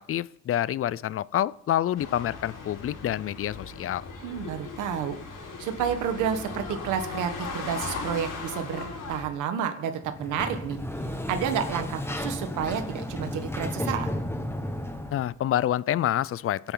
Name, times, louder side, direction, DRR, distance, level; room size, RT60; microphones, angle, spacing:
voice 1, 0.0-4.0 15.1-16.7, left 11 dB, 45° left, 20 dB, 0.5 m, -27 dB
sound 1, 2.0-9.3, left 4 dB, 85° left, 4.6 m, -38 dB
voice 2, 4.2-10.8 11.0-14.1, right 8 dB, 90° right, 7 dB, 1.4 m, -30 dB
Sliding door, 10.0-15.3, left 1 dB, 10° left, 1.5 m, -33 dB
23.5 x 9.0 x 3.9 m, 0.79 s
cardioid pair, 90°, 30 cm